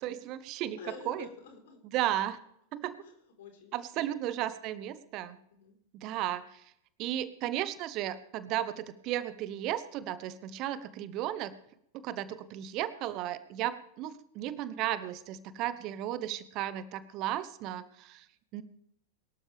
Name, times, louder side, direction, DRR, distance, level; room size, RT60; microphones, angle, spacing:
voice 1, 0.0-0.8 1.1-1.3 1.9-2.4 2.7-3.0 3.7-5.4 5.9-6.6 7.0-11.5 12.0-18.2 18.5-18.6, right 12 dB, 40° right, 15 dB, 0.9 m, -34 dB
voice 2, 0.8-1.8 3.0-4.2 5.5-5.8 15.5-16.0, left 6 dB, 55° left, 4 dB, 4.3 m, -50 dB
23.0 x 12.5 x 3.5 m, 0.73 s
figure-of-eight pair, 90°, 0 cm